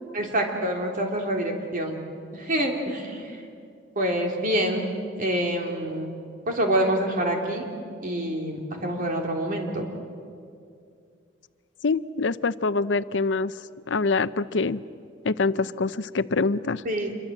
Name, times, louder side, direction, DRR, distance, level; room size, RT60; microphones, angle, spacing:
voice 1, 0.1-2.0 2.3-3.3 3.9-4.9 5.2-6.1 6.5-7.6 8.0-9.8 16.8-17.1, right 1 dB, 45° right, 1 dB, 3.4 m, -26 dB
voice 2, 11.8-13.5 13.9-14.8 15.2-16.8, left 3 dB, 70° left, 14 dB, 0.6 m, -25 dB
27.0 x 23.0 x 7.6 m, 2.4 s
head